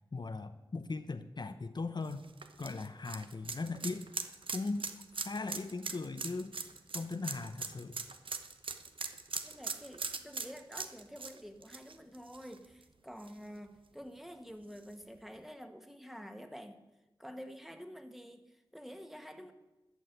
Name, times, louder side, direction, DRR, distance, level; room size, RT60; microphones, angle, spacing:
voice 1, 0.1-2.3 2.6-4.1 4.5-6.5 6.9-8.0, left 3 dB, 55° left, 9 dB, 0.8 m, -39 dB
sound 1, 2.0-12.8 13.2-13.3 14.8-14.9, right 4 dB, 75° right, 1.0 m, -41 dB
voice 2, 9.4-16.8 17.2-19.5, equal, 5° right, 7 dB, 1.7 m, -49 dB
14.0 x 6.3 x 9.4 m, 1.0 s
cardioid pair, 45°, 9 cm